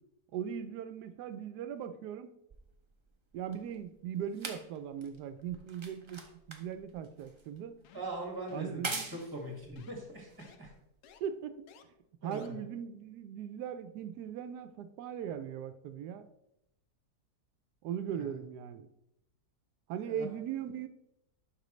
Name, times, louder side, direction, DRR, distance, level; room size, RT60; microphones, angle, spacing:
voice 1, 0.3-2.3 3.3-7.8 8.5-9.1 11.2-11.6 12.2-16.3 17.8-18.9 19.9-20.9, right 8 dB, 90° right, 11 dB, 1.2 m, -39 dB
sound 1, 2.5-11.1 12.0-12.1, right 3 dB, 35° right, 0.5 m, -45 dB
sound 2, 7.8-8.2 8.5-8.8 9.1-9.4 9.8-9.9 10.4-10.6 11.0-11.2 11.7-11.8 12.3-12.5, left 8 dB, 80° left, 1.2 m, -57 dB
voice 2, 7.9-10.7 12.2-12.5 18.1-18.4 20.0-20.3, right 1 dB, 15° right, 0 dB, 1.9 m, -42 dB
12.0 x 5.4 x 3.1 m, 0.84 s
omnidirectional pair, 1.7 m